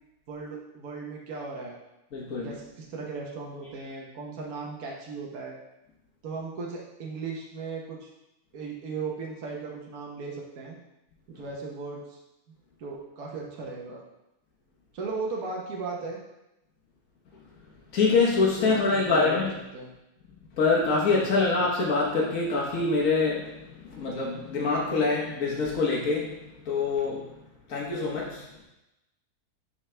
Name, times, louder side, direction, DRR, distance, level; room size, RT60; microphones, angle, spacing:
voice 1, 0.3-1.8 2.4-5.6 6.2-8.1 8.5-10.8 11.3-12.2 12.8-14.0 14.9-16.2 18.7-19.3 19.7-19.9 21.1-21.4, right 4 dB, 70° right, -2 dB, 1.5 m, -37 dB
voice 2, 2.1-2.5 17.9-19.5 20.5-26.4 26.6-27.3 27.7-28.5, left 3 dB, 60° left, -4 dB, 1.5 m, -25 dB
10.5 x 4.7 x 3.3 m, 0.92 s
omnidirectional pair, 1.6 m